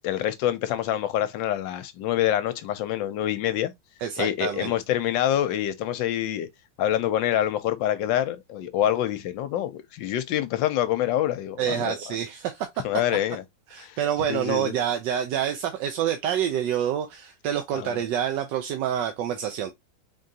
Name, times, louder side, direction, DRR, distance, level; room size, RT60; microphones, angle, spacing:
voice 1, 0.0-3.7 4.2-6.5 6.8-12.0 12.8-13.4 13.8-14.0 14.3-14.7 17.7-18.0, left 12 dB, 75° left, 1.2 m, -26 dB
voice 2, 4.0-4.7 11.6-12.7 13.7-19.7, right 9 dB, 75° right, 1.1 m, -27 dB
3.7 x 3.6 x 2.7 m
omnidirectional pair, 2.2 m